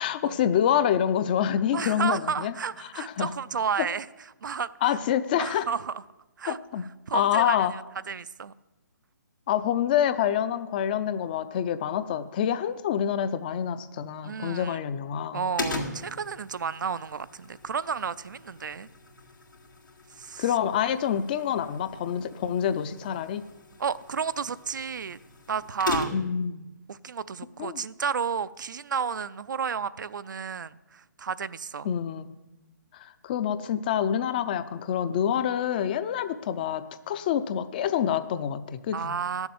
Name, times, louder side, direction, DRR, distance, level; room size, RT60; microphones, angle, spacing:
voice 1, 0.0-2.5 3.0-3.3 4.8-5.7 6.5-6.9 7.1-7.7 9.5-15.5 20.4-23.4 26.1-26.7 27.6-27.8 31.8-32.3 32.9-39.2, left 9 dB, 30° left, 0.5 m, -27 dB
voice 2, 1.7-4.1 4.4-4.7 5.4-6.0 6.4-6.6 7.1-7.8 8.1-8.5 14.2-14.8 15.3-18.9 20.1-20.5 23.8-25.2 25.5-26.1 26.9-31.9 38.9-39.5, right 6 dB, 75° right, 0.5 m, -32 dB
sound 1, 15.6-26.5, left 3 dB, 85° left, 2.5 m, -39 dB
12.0 x 7.2 x 7.8 m
hypercardioid pair, 155°, 10 cm